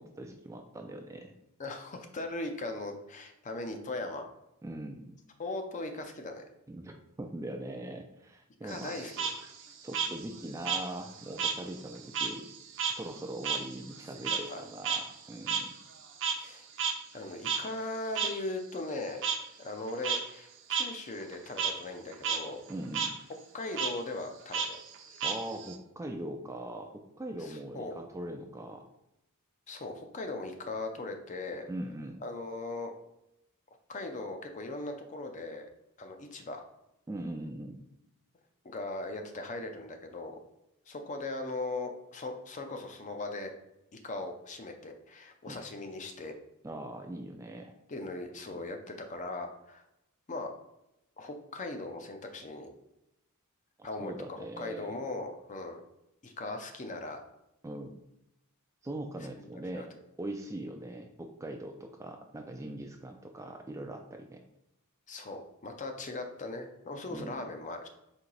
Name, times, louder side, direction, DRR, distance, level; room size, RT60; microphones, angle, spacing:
voice 1, 0.0-1.3 4.6-5.2 6.7-9.0 9.8-12.4 12.9-15.8 22.7-23.2 25.2-28.9 31.7-32.2 37.1-37.8 45.5-45.6 46.6-47.7 48.5-48.6 53.8-54.9 57.6-58.0 58.8-59.9 60.2-64.4 67.1-67.4, right 1 dB, 15° right, 4 dB, 0.3 m, -41 dB
voice 2, 1.6-4.2 5.4-6.4 8.6-9.3 14.1-14.6 16.4-16.7 17.1-19.2 19.6-22.6 23.5-24.8 27.4-27.9 29.7-31.7 32.2-32.9 33.9-35.7 36.0-36.6 38.6-40.4 40.9-43.5 43.9-46.3 47.9-49.8 50.3-50.5 51.2-52.7 53.8-55.8 56.2-57.2 59.3-59.4 59.7-59.9 65.1-67.9, left 2 dB, 35° left, 5 dB, 0.5 m, -39 dB
Frog, 8.7-11.6 11.9-16.5 16.8-16.9 17.4-17.6 18.2-18.3 19.2-19.4 19.9-20.2 20.7-20.8 21.2-21.7 22.1-22.4 22.7-23.1 23.7-23.9 24.5-25.7, right 7 dB, 60° right, 0.6 m, -32 dB
4.4 x 2.7 x 3.9 m, 0.84 s
head